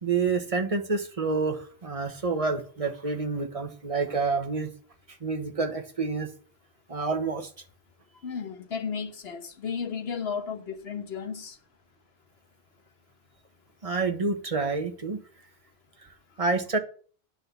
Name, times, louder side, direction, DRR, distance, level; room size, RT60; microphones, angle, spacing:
voice 1, 0.0-4.7 5.2-6.3 6.9-7.5 13.8-15.2 16.4-16.8, right 4 dB, 35° right, 1.3 m, -28 dB
voice 2, 8.2-11.5, left 6 dB, 70° left, 1.4 m, -34 dB
9.8 x 6.1 x 6.8 m
omnidirectional pair, 1.1 m